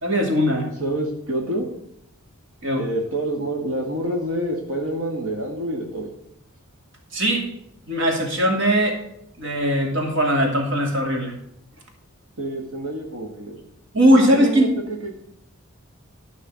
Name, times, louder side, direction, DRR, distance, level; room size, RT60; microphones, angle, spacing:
voice 1, 0.0-0.7 2.6-2.8 7.1-7.5 7.9-9.0 9.4-11.3 13.9-14.7, equal, 60° right, 2 dB, 2.5 m, -19 dB
voice 2, 0.8-1.7 2.8-6.1 12.4-13.6 14.1-15.1, right 1 dB, 90° right, 1 dB, 1.9 m, -27 dB
12.5 x 5.6 x 6.2 m, 0.75 s
head